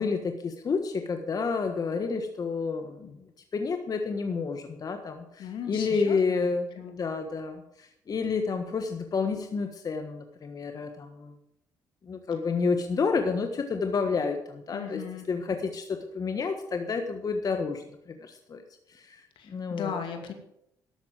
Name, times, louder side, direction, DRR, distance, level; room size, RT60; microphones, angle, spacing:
voice 1, 0.0-11.4 12.0-15.0 15.3-19.9, left 4 dB, 45° left, 6 dB, 1.4 m, -30 dB
voice 2, 5.4-6.5 6.8-7.0 14.7-15.3 19.4-20.3, left 7 dB, 75° left, 5 dB, 2.4 m, -37 dB
12.5 x 8.3 x 7.6 m, 0.80 s
supercardioid pair, 65°, 9 cm